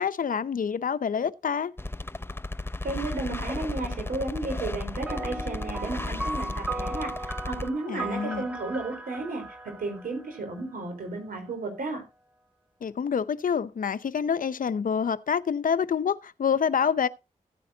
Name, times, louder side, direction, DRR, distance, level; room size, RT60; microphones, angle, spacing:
voice 1, 0.0-1.7 7.9-8.4 12.8-17.1, left 7 dB, 70° left, 0.7 m, -27 dB
sound 1, 1.8-7.7, left 2 dB, 15° left, 0.8 m, -34 dB
voice 2, 2.8-12.0, right 3 dB, 85° right, 4.1 m, -33 dB
sound 2, 5.1-10.8, right 2 dB, 10° right, 1.6 m, -37 dB
15.0 x 9.4 x 2.8 m
cardioid pair, 40°, 14 cm